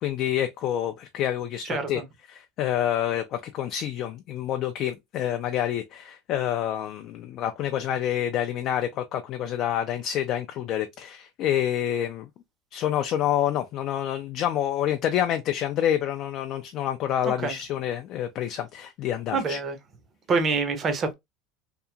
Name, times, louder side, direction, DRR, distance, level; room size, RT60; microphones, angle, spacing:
voice 1, 0.0-2.0 2.3-12.3 12.7-19.6, left 10 dB, 40° left, 0.3 m, -27 dB
voice 2, 1.6-2.1 17.2-17.6 19.3-19.8 20.3-21.1, right 4 dB, 25° right, 0.6 m, -26 dB
2.8 x 2.4 x 2.2 m
cardioid pair, 155°, 0 cm